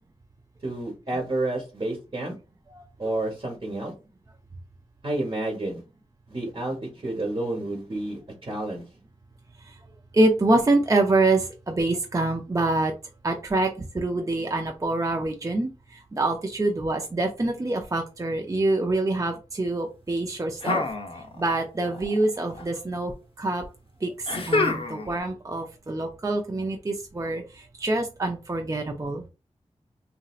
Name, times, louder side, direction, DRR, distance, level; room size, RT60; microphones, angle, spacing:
voice 1, 0.6-2.3 3.0-3.9 5.0-5.8 6.3-8.8, right 2 dB, 50° right, -1 dB, 1.1 m, -30 dB
voice 2, 10.1-12.9 13.2-15.7 16.1-20.8 21.4-23.1 23.4-23.6 24.0-24.1 24.5-27.4 27.8-29.2, right 2 dB, 30° right, 3 dB, 0.5 m, -25 dB
sound 1, 20.6-21.6 21.9-22.6 24.3-25.2, left 3 dB, 50° left, 0.6 m, -27 dB
3.0 x 2.6 x 2.4 m, 0.30 s
cardioid pair, 55°, 12 cm